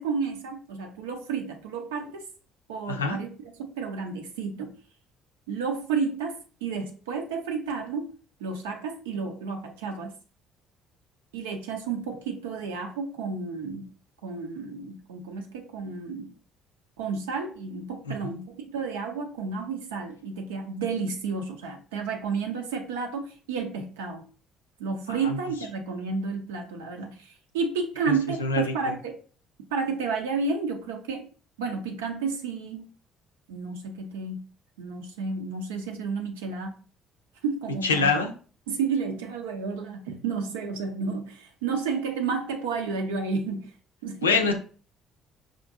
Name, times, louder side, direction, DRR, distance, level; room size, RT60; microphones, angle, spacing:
voice 1, 0.0-2.2 2.7-4.7 5.5-8.1 8.4-10.1 11.3-13.9 14.2-16.3 17.0-24.2 24.8-29.2 29.7-31.3 31.6-32.9 33.5-34.4 34.8-36.8 37.4-38.1 38.7-43.7 44.0-44.5, right 5 dB, 80° right, 3 dB, 0.6 m, -31 dB
voice 2, 2.9-3.2 18.1-18.3 25.1-25.4 28.1-28.2 28.4-28.7 37.8-38.3 44.2-44.5, left 4 dB, 90° left, 5 dB, 0.4 m, -25 dB
5.0 x 2.5 x 2.4 m, 0.39 s
hypercardioid pair, 50°, 0 cm